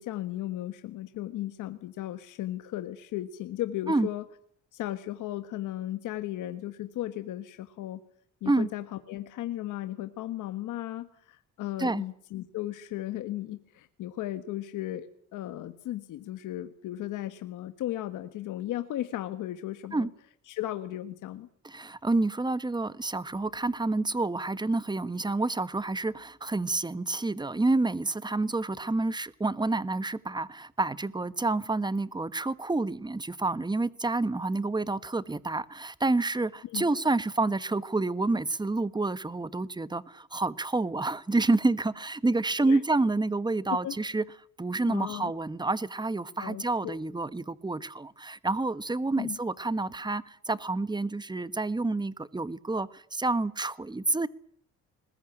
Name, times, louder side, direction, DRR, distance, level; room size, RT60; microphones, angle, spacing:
voice 1, 0.0-4.2 4.7-8.0 8.4-20.1 20.5-21.5 36.7-36.9 42.6-42.8 43.7-43.9 44.9-45.3 46.4-47.0 49.2-49.4, left 14 dB, 85° left, 1.5 m, -36 dB
voice 2, 21.6-44.2 44.6-54.3, right 2 dB, 15° right, 1.3 m, -28 dB
21.5 x 21.0 x 10.0 m
cardioid pair, 90°, 30 cm